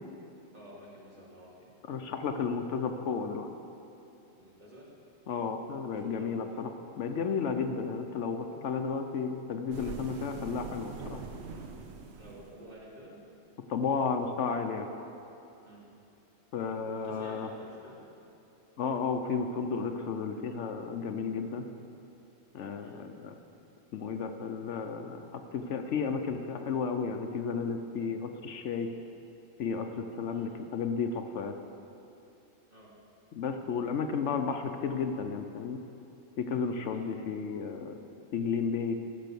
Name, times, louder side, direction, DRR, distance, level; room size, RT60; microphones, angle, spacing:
voice 1, 0.5-1.7 4.4-4.9 5.9-6.3 7.6-7.7 12.2-13.2 15.6-15.8 16.9-18.0 22.8-23.0 30.3-30.5 32.7-32.9 33.7-34.3 36.9-37.1, right 1 dB, 35° right, -6 dB, 2.3 m, -51 dB
voice 2, 1.9-3.5 5.3-6.7 7.0-11.2 13.7-14.9 16.5-17.5 18.8-21.7 22.5-23.3 23.9-28.9 29.6-31.5 33.3-35.8 36.4-37.9 38.3-39.0, left 5 dB, 70° left, 6 dB, 0.9 m, -33 dB
sound 1, 9.7-12.7, right 4 dB, 65° right, 1.0 m, -43 dB
14.0 x 5.5 x 6.8 m, 2.8 s
omnidirectional pair, 1.3 m